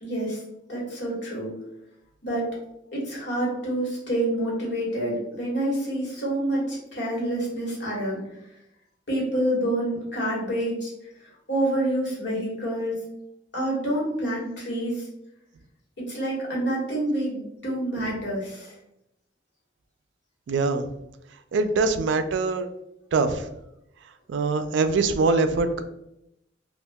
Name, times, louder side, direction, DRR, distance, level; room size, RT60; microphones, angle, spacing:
voice 1, 0.0-0.4 0.7-1.5 2.2-2.5 2.9-8.2 9.1-10.9 11.2-13.0 13.5-15.1 16.0-18.7, right 1 dB, 70° left, -4 dB, 1.3 m, -27 dB
voice 2, 20.5-20.9 21.5-22.7 23.1-23.5 24.3-25.8, right 3 dB, 80° right, 10 dB, 0.3 m, -23 dB
2.8 x 2.4 x 3.4 m, 0.83 s
head